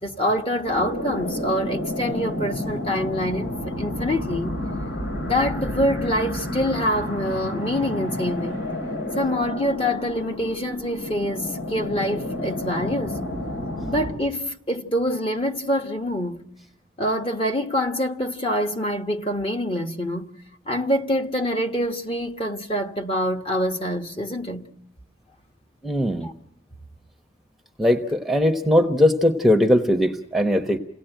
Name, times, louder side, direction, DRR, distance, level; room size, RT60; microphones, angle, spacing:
voice 1, 0.0-4.6 5.3-8.6 9.1-13.2 13.9-16.4 17.0-20.3 20.7-24.7 26.2-26.3, equal, 30° left, 1.2 m, -25 dB
sound 1, 0.7-14.1, left 1 dB, 80° left, 4.4 m, -30 dB
voice 2, 25.8-26.3 27.8-30.8, left 1 dB, ahead, 0.9 m, -19 dB
28.5 x 18.0 x 9.1 m
head